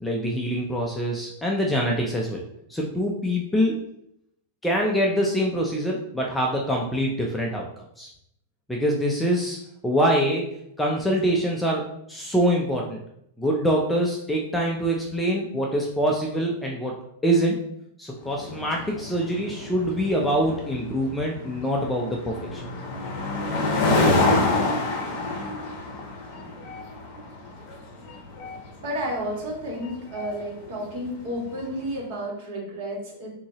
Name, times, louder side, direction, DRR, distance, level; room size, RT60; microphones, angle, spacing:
voice 1, 0.0-2.4 2.7-3.8 4.6-8.1 8.7-9.6 9.8-13.0 13.4-16.9 17.2-17.6 18.0-22.6, equal, 5° left, -2 dB, 0.4 m, -25 dB
sound 1, 18.3-31.8, left 2 dB, 35° left, 1.0 m, -28 dB
voice 2, 28.8-33.3, equal, 45° right, -2 dB, 1.6 m, -31 dB
5.8 x 2.7 x 2.8 m, 0.75 s
supercardioid pair, 165°, 0 cm